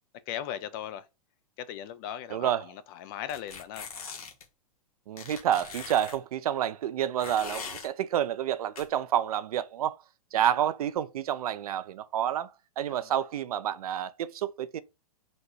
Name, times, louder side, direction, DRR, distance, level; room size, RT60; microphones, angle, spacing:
voice 1, 0.3-1.1 1.6-3.9 10.3-10.4 12.9-13.1, left 10 dB, 35° left, 0.4 m, -38 dB
voice 2, 2.3-2.7 5.1-10.0 10.3-12.5 12.8-14.8, right 10 dB, 75° right, 0.4 m, -29 dB
sound 1, 3.3-4.4 5.2-6.2 7.2-7.9 8.8-8.9, left 5 dB, 75° left, 1.1 m, -41 dB
4.0 x 2.2 x 4.4 m
hypercardioid pair, 120°, 19 cm